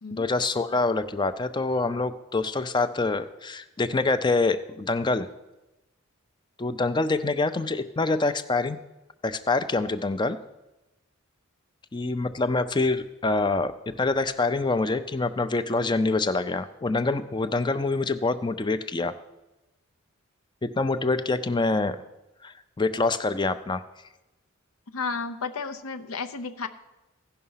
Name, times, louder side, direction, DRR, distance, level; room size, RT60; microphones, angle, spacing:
voice 1, 0.1-5.3 6.6-8.8 9.2-10.4 11.9-19.1 20.6-22.0 22.4-23.8, left 3 dB, 20° left, 12 dB, 0.4 m, -26 dB
voice 2, 24.9-26.7, left 4 dB, 85° left, 9 dB, 0.7 m, -32 dB
15.5 x 5.6 x 5.6 m, 1.0 s
head